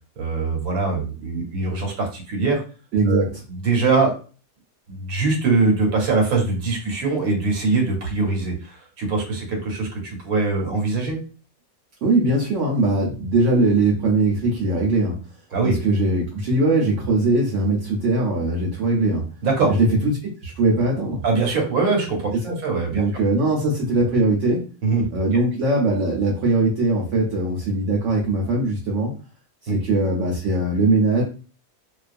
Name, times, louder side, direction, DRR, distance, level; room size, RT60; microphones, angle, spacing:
voice 1, 0.2-2.6 3.1-3.2 3.5-4.1 4.9-11.2 15.5-15.8 19.4-19.8 21.2-22.3 22.6-23.0 24.8-25.0 25.3-25.4 29.7-29.8, right 3 dB, 90° right, 1 dB, 1.3 m, -22 dB
voice 2, 2.9-3.3 12.0-15.2 15.6-19.3 19.8-21.2 22.4-22.6 22.9-24.7 25.1-29.1 29.6-31.2, right 2 dB, 65° right, -2 dB, 0.9 m, -20 dB
2.4 x 2.3 x 2.4 m, 0.36 s
omnidirectional pair, 1.4 m